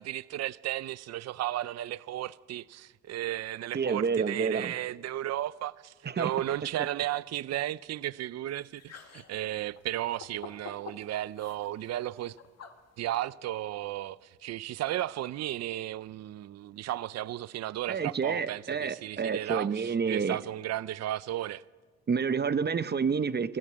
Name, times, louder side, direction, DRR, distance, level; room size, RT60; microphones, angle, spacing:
voice 1, 0.0-12.4 13.0-21.6, right 13 dB, 60° right, 0.6 m, -34 dB
voice 2, 3.7-4.7 6.0-6.3 17.9-20.4 22.1-23.6, right 6 dB, 35° right, 0.9 m, -29 dB
sound 1, 8.6-13.2, left 6 dB, 55° left, 2.1 m, -50 dB
25.5 x 14.0 x 8.8 m
cardioid pair, 90°, 30 cm